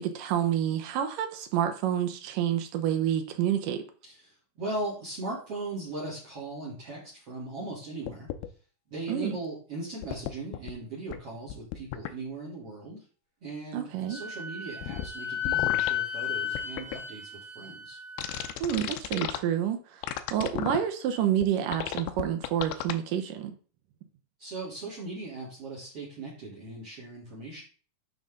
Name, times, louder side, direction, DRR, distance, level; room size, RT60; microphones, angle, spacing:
voice 1, 0.0-3.8 9.1-9.4 13.7-14.2 18.6-20.0 20.3-23.6, right 10 dB, 80° right, 6 dB, 1.9 m, -28 dB
voice 2, 4.0-8.3 8.9-13.0 13.4-18.0 24.4-27.6, right 2 dB, 35° right, -4 dB, 3.8 m, -38 dB
sound 1, 8.1-8.5 10.0-10.7 11.1-11.2 11.5-12.1 14.8-15.1 15.4-15.9 16.6-17.0 18.2-19.4 20.0-20.8 21.4-21.5 21.7-22.9, left 13 dB, 80° left, 2.2 m, -33 dB
Wind instrument woodwind instrument, 14.1-18.5, left 9 dB, 20° right, 4.6 m, -33 dB
11.0 x 5.4 x 3.8 m, 0.39 s
omnidirectional pair, 5.1 m